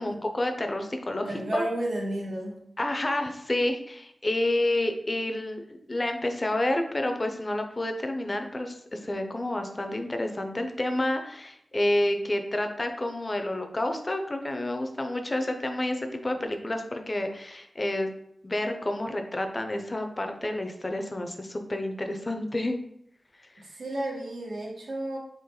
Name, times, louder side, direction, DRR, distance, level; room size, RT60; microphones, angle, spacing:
voice 1, 0.0-1.6 2.8-18.1 18.4-22.8, left 1 dB, 30° left, 5 dB, 0.5 m, -29 dB
voice 2, 1.2-2.6 23.6-25.2, right 1 dB, 75° right, -2 dB, 0.9 m, -32 dB
3.8 x 3.0 x 4.2 m, 0.72 s
wide cardioid pair, 110°, 0 cm